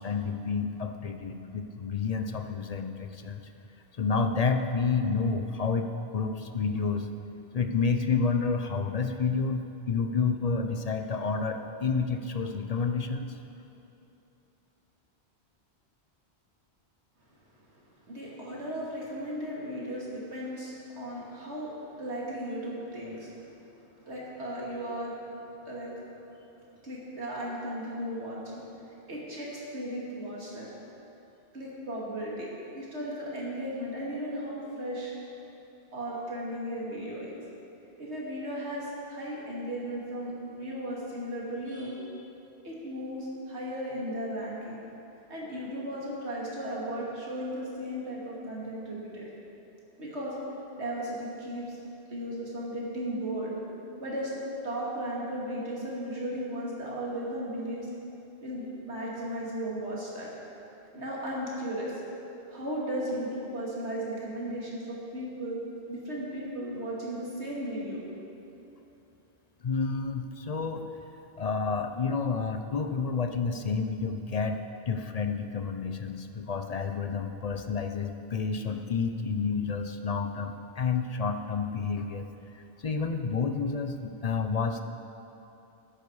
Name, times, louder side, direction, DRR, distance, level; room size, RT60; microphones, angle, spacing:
voice 1, 0.0-3.5 4.0-7.1 7.5-13.3 69.6-70.9 71.4-82.3 82.5-84.8, left 5 dB, 45° left, 6 dB, 0.6 m, -30 dB
voice 2, 18.0-23.3 24.0-25.2 25.6-25.9 26.8-28.6 29.1-30.7 31.5-32.5 32.7-35.1 35.9-37.3 38.0-42.0 42.6-44.8 45.3-49.3 50.0-50.3 50.7-51.8 52.1-53.5 54.0-54.3 54.6-57.9 58.4-60.3 60.9-61.9 62.5-65.6 65.9-68.0, equal, 85° right, -5 dB, 2.8 m, -35 dB
13.5 x 10.0 x 4.8 m, 2.9 s
omnidirectional pair, 1.1 m